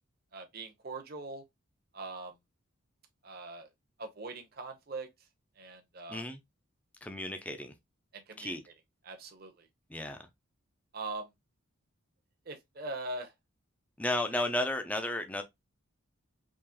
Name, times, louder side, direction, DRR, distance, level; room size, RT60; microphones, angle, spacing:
voice 1, 0.3-1.4 1.9-2.3 3.2-3.7 4.0-5.1 5.6-6.2 8.1-8.6 9.0-9.7 10.9-11.3 12.5-13.3, right 2 dB, 45° right, 0.8 m, -41 dB
voice 2, 6.1-6.4 7.0-7.7 8.4-8.6 9.9-10.3 14.0-15.4, left 1 dB, 5° left, 0.4 m, -33 dB
3.7 x 3.0 x 2.9 m
head